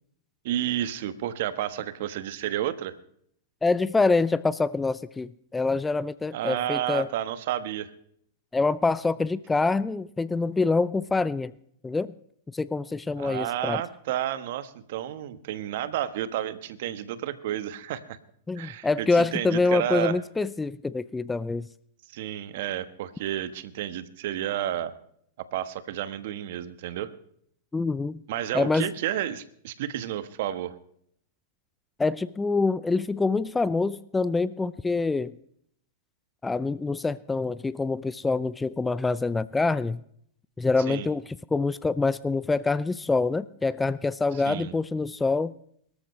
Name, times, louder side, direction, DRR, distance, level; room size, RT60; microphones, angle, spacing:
voice 1, 0.4-2.9 6.3-7.9 13.2-18.2 18.5-20.2 22.1-24.9 25.5-27.1 28.3-30.7 40.9-41.1 44.3-44.7, right 11 dB, 60° right, 13 dB, 1.3 m, -31 dB
voice 2, 3.6-7.1 8.5-11.5 11.8-12.1 12.5-13.8 18.5-21.7 27.7-28.2 28.5-28.9 32.0-35.4 36.4-40.0 40.6-45.5, left 3 dB, 10° left, 18 dB, 0.5 m, -26 dB
23.5 x 13.5 x 3.2 m, 0.67 s
hypercardioid pair, 105°, 0 cm